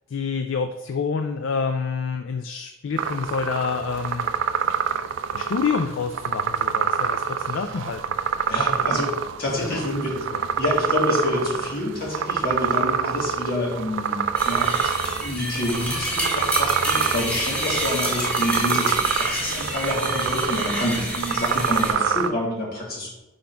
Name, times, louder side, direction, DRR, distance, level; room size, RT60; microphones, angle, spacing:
voice 1, 0.1-4.3 5.3-8.0 9.5-9.8 10.3-10.4, left 5 dB, 65° left, 7 dB, 0.4 m, -27 dB
sound 1, 3.0-22.3, right 7 dB, 65° right, 0.3 m, -26 dB
voice 2, 8.5-10.2 10.6-23.1, left 1 dB, 50° left, -4 dB, 2.1 m, -27 dB
sound 2, 14.3-21.9, equal, 5° left, 1.9 m, -28 dB
5.0 x 4.1 x 5.7 m, 1.0 s
head